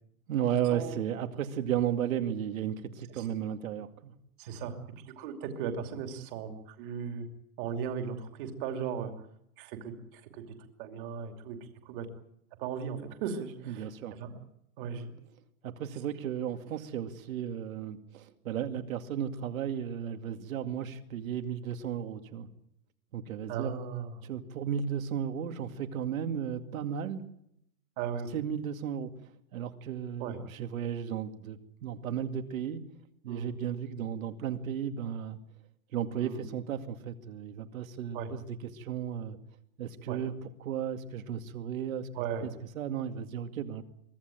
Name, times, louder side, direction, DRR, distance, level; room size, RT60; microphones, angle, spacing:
voice 1, 0.3-4.1 13.7-14.2 15.6-22.5 23.1-23.7 24.2-27.2 28.3-32.8 33.2-35.4 35.9-38.5 38.7-39.4 39.8-42.1 42.4-42.5 42.8-43.8, right 9 dB, 70° right, 7 dB, 2.4 m, -34 dB
voice 2, 4.4-4.8 5.2-7.3 7.6-9.1 9.6-10.4 10.8-11.6 11.8-12.1 12.6-14.4 14.8-15.1 23.5-24.2 28.0-28.3 30.2-30.4 33.3-33.5 36.2-36.4 38.1-38.3 40.1-40.2 42.1-42.5, right 7 dB, 40° right, 5 dB, 2.8 m, -37 dB
24.0 x 15.5 x 9.1 m, 0.78 s
supercardioid pair, 165°, 42 cm